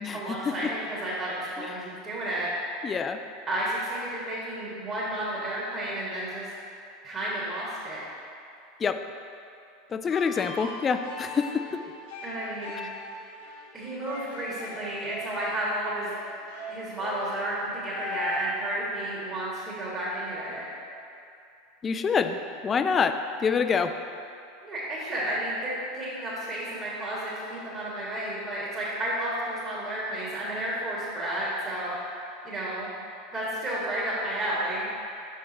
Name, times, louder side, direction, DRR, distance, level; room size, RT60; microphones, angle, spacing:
voice 1, 0.1-2.5 3.4-6.5 7.0-8.0 12.2-12.9 13.7-16.1 16.7-20.7 24.6-32.9 33.3-34.9, right 1 dB, 25° right, -8 dB, 1.5 m, -32 dB
voice 2, 1.6-1.9 2.8-3.2 8.8-9.0 9.9-11.8 21.8-22.4 22.6-24.0, left 6 dB, 25° left, 9 dB, 0.3 m, -26 dB
sound 1, 10.1-18.5, left 1 dB, 60° left, 1.1 m, -40 dB
5.6 x 5.4 x 3.9 m, 2.6 s
figure-of-eight pair, 80°, 0 cm